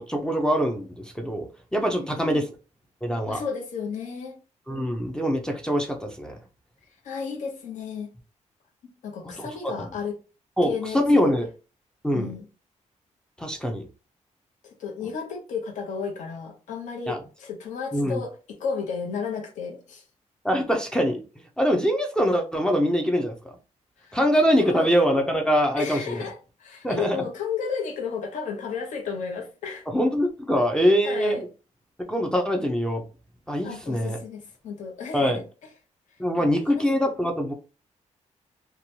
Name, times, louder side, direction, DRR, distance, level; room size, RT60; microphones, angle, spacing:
voice 1, 0.0-2.4 3.0-3.4 4.7-6.4 9.4-9.5 9.8-9.9 10.6-11.5 12.0-12.3 13.4-13.9 17.1-17.2 17.9-18.2 20.4-21.2 21.6-23.5 24.1-26.2 26.8-27.2 29.9-31.5 32.1-33.0 33.5-34.2 35.1-35.4 36.2-37.5, equal, 5° left, 0.4 m, -23 dB
voice 2, 1.9-2.5 3.3-4.4 7.0-8.1 8.8-10.2 10.6-11.3 12.1-12.5 14.6-20.0 24.0-24.2 24.5-24.9 25.8-29.9 31.0-31.4 33.6-35.4 36.4-36.9, left 6 dB, 75° left, 0.8 m, -33 dB
2.8 x 2.2 x 2.6 m
wide cardioid pair, 155°, 13 cm